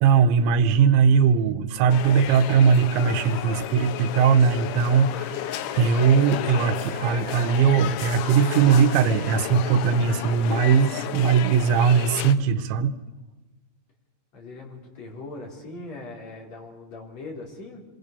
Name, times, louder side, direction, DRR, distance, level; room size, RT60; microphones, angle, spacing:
voice 1, 0.0-12.9, right 6 dB, 80° right, 5 dB, 3.5 m, -20 dB
sound 1, 1.9-12.4, left 12 dB, 85° left, 3.5 m, -32 dB
voice 2, 14.3-17.9, left 2 dB, 35° left, 1 dB, 5.1 m, -40 dB
26.0 x 23.0 x 6.9 m, 1.2 s
omnidirectional pair, 5.3 m